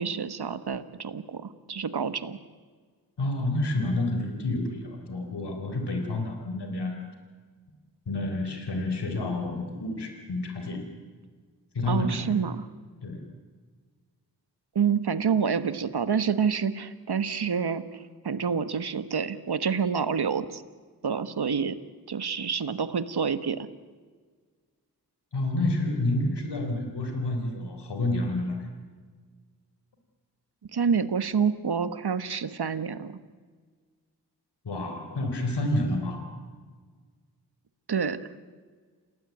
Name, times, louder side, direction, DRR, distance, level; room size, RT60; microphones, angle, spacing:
voice 1, 0.0-2.4 11.9-12.7 14.7-20.6 21.0-21.8 22.1-23.7 30.6-33.2 37.9-38.2, right 6 dB, 75° right, 12 dB, 1.5 m, -28 dB
voice 2, 3.2-7.0 8.1-10.8 11.7-12.4 13.0-13.2 25.3-28.7 34.6-36.3, left 2 dB, 85° left, 5 dB, 3.8 m, -29 dB
28.5 x 18.5 x 9.3 m, 1.6 s
cardioid pair, 45°, 40 cm